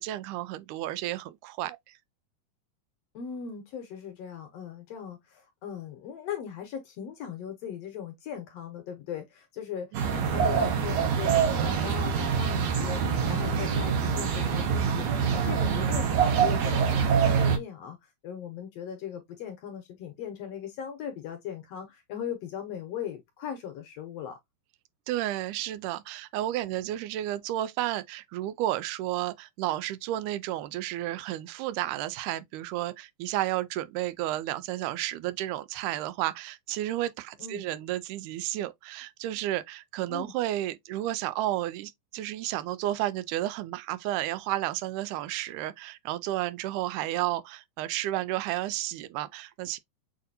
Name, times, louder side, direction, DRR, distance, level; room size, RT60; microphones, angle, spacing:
voice 1, 0.0-1.8 9.9-10.3 25.1-49.8, right 14 dB, 90° right, 2.1 m, -32 dB
voice 2, 3.1-15.1 15.3-18.0 18.2-24.4 37.4-37.6 40.1-40.3, left 8 dB, 70° left, 1.6 m, -39 dB
sound 1, 9.9-17.6, right 6 dB, 65° right, 2.0 m, -25 dB
6.6 x 2.6 x 2.6 m
omnidirectional pair, 3.6 m